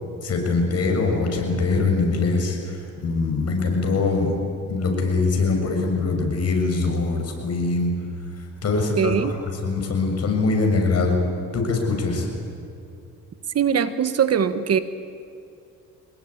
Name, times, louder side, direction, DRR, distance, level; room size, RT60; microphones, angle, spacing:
voice 1, 0.2-4.3 4.7-7.9 8.6-11.2 11.5-12.3, left 3 dB, 55° left, 2 dB, 7.2 m, -23 dB
voice 2, 8.7-9.4 13.5-14.8, right 8 dB, 55° right, 11 dB, 1.5 m, -21 dB
26.5 x 21.0 x 9.9 m, 2.5 s
cardioid pair, 90°, 30 cm